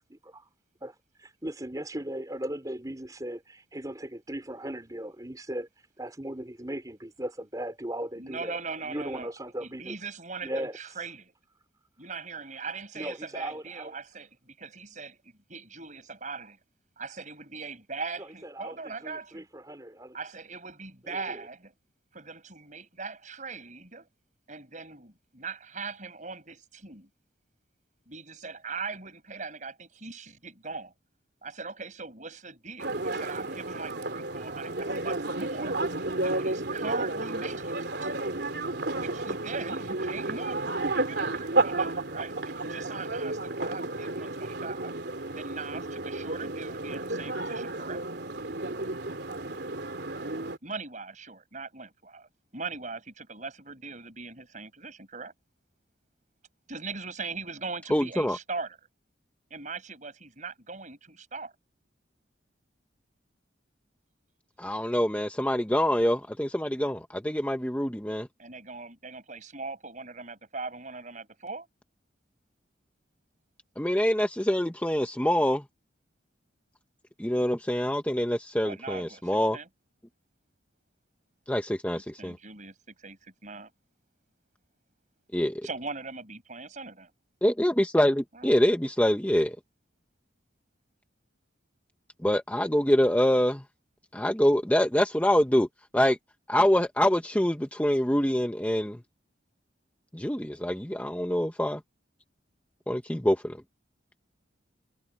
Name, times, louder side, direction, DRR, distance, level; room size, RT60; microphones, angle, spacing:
voice 1, 0.8-5.7 6.0-10.0 10.4-10.8 13.0-13.9 18.2-20.2 21.1-21.4, right 1 dB, 20° right, 4.2 m, -37 dB
voice 2, 8.2-9.3 9.6-11.3 12.0-15.2 15.5-16.6 17.0-19.5 20.1-21.7 22.1-24.1 24.5-27.1 28.1-30.9 31.4-35.8 36.2-38.1 38.9-44.9 45.4-48.0 50.6-55.3 56.7-58.8 59.5-61.5 68.4-71.7 78.6-79.7 81.9-83.7 85.6-87.1 88.3-88.5, right 4 dB, 40° right, 6.0 m, -40 dB
sound 1, 32.8-50.6, right 2 dB, 60° right, 3.5 m, -32 dB
voice 3, 57.9-58.4 64.6-68.3 73.8-75.6 77.2-79.6 81.5-82.4 85.3-85.7 87.4-89.6 92.2-93.6 94.1-95.7 95.9-96.2 96.5-99.0 100.1-101.8 102.9-103.6, equal, 10° left, 1.0 m, -25 dB
head